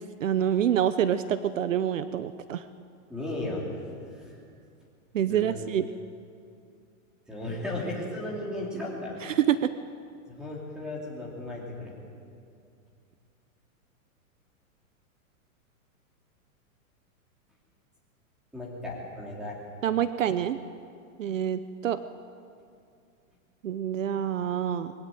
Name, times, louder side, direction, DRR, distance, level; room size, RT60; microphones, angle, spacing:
voice 1, 0.2-2.6 5.1-5.9 9.2-9.7 19.8-20.6 21.2-22.0 23.6-24.9, right 10 dB, 60° right, 13 dB, 0.8 m, -26 dB
voice 2, 3.1-3.6 4.1-4.3 5.3-5.6 7.3-9.2 10.4-11.9 18.5-19.6, left 1 dB, ahead, -3 dB, 2.7 m, -35 dB
21.5 x 16.5 x 9.2 m, 2.4 s
hypercardioid pair, 180°, 42 cm